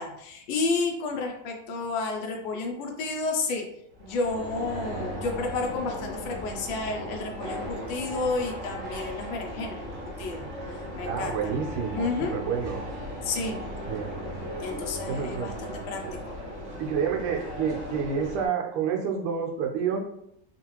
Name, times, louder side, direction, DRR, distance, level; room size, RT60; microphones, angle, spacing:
voice 1, 0.0-3.6 4.0-11.6 11.9-12.3 13.2-13.6 14.6-16.4, left 3 dB, 70° left, 2 dB, 1.3 m, -31 dB
sound 1, 3.9-18.5, equal, 70° right, 0.7 m, -37 dB
voice 2, 11.0-12.8 13.9-14.1 15.1-15.5 16.8-20.0, right 6 dB, 85° right, 1 dB, 1.6 m, -29 dB
3.7 x 2.4 x 2.9 m, 0.76 s
omnidirectional pair, 2.4 m